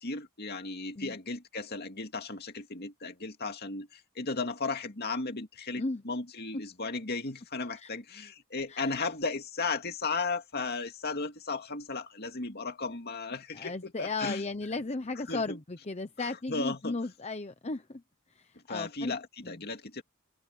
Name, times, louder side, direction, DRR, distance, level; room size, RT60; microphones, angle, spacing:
voice 1, 0.0-14.4 15.3-15.6 16.2-17.0 18.7-20.0, left 3 dB, 50° left, 2.3 m, -35 dB
voice 2, 5.7-6.0 7.8-7.9 8.7-8.9 13.5-18.0 18.4-19.1 19.4-19.6, left 3 dB, 30° left, 0.8 m, -35 dB
head